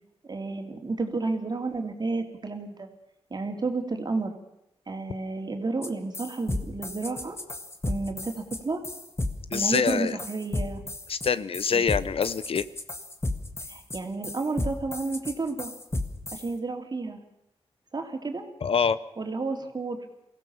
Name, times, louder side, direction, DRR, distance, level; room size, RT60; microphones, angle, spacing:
voice 1, 0.3-2.9 3.3-4.3 4.9-7.4 7.8-8.8 9.5-10.8 11.7-11.8 13.7-15.7 16.3-17.2 17.9-18.4 19.2-20.0, right 3 dB, 40° right, 4 dB, 3.0 m, -31 dB
sound 1, 5.8-5.9 6.1-16.5, left 2 dB, 25° left, 2.0 m, -33 dB
voice 2, 9.5-10.2 11.1-12.7 18.6-19.0, left 6 dB, 60° left, 16 dB, 0.8 m, -25 dB
23.0 x 16.5 x 7.1 m, 0.85 s
cardioid pair, 75°, 11 cm